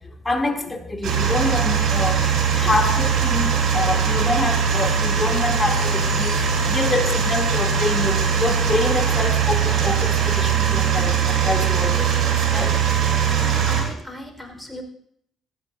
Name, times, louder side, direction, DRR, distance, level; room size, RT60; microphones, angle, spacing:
voice 1, 0.2-2.2 2.5-12.1 12.5-12.7, left 2 dB, 20° left, 3 dB, 2.9 m, -26 dB
sound 1, 1.0-13.8, right 6 dB, 55° right, 4.1 m, -21 dB
voice 2, 13.3-14.8, left 1 dB, ahead, 4 dB, 4.6 m, -37 dB
25.0 x 14.0 x 2.7 m, 0.67 s
figure-of-eight pair, 45°, 0 cm